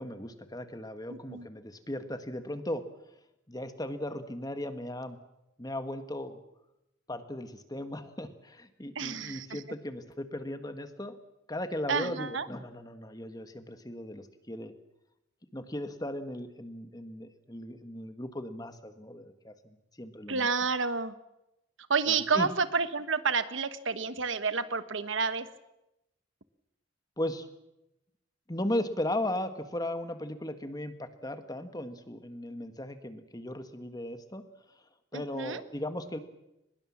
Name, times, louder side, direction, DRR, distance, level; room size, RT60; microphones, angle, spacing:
voice 1, 0.0-2.8 3.5-5.2 5.6-6.4 7.1-11.2 11.5-14.7 15.5-20.5 22.1-22.5 27.2-27.5 28.5-34.4 35.1-36.2, left 1 dB, 20° left, 9 dB, 1.5 m, -37 dB
voice 2, 1.1-1.5 8.9-9.6 11.9-12.5 20.3-21.1 21.9-25.5 35.1-35.6, right 5 dB, 75° right, 12 dB, 1.3 m, -30 dB
23.0 x 21.0 x 7.3 m, 0.89 s
head